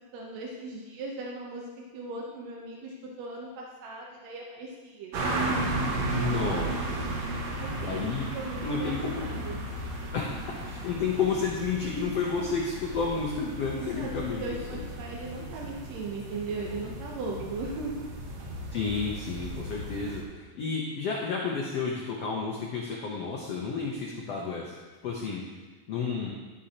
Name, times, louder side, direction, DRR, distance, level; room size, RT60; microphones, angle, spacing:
voice 1, 0.1-1.6 1.9-5.2 7.6-9.6 13.8-14.1 14.4-18.1, right 3 dB, 80° right, -2 dB, 1.5 m, -38 dB
sound 1, 5.1-20.2, right 2 dB, 60° right, 2.1 m, -34 dB
voice 2, 6.1-7.0 7.8-9.3 10.1-14.8 18.7-24.7 25.0-25.4 25.9-26.3, left 5 dB, 85° left, -2 dB, 1.4 m, -31 dB
12.0 x 8.2 x 2.9 m, 1.3 s
omnidirectional pair, 4.4 m